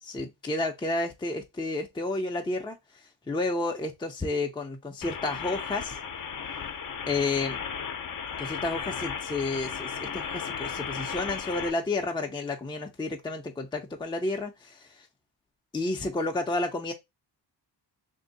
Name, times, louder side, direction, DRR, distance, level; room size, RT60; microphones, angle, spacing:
voice 1, 0.0-2.8 3.3-6.0 7.1-7.6 8.4-15.1 15.7-16.9, left 2 dB, 10° left, 0.6 m, -31 dB
sound 1, 5.0-11.7, left 7 dB, 50° left, 0.7 m, -35 dB
2.9 x 2.7 x 3.9 m
wide cardioid pair, 110°, 42 cm